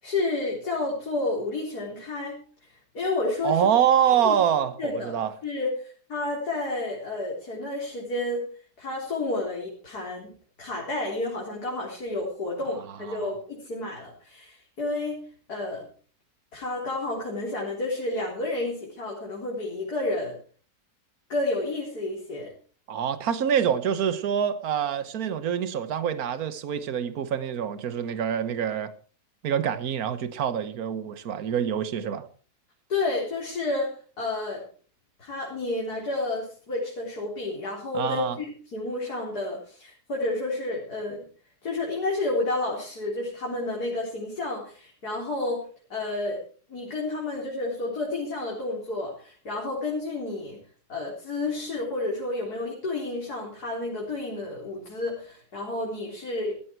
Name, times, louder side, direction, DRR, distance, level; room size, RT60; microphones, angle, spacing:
voice 1, 0.0-3.6 4.2-4.4 4.8-5.1 5.4-8.5 8.8-10.3 10.6-12.8 13.1-15.2 15.5-15.8 16.5-20.4 21.3-22.5 32.9-33.9 34.2-34.6 35.2-41.2 41.6-45.6 45.9-46.4 46.7-50.6 50.9-56.6, left 2 dB, 75° left, 4.5 m, -30 dB
voice 2, 3.4-5.3 13.1-13.3 22.9-28.9 29.4-32.3 37.9-38.4, right 8 dB, 65° right, 1.6 m, -25 dB
16.0 x 13.5 x 4.6 m
omnidirectional pair, 1.7 m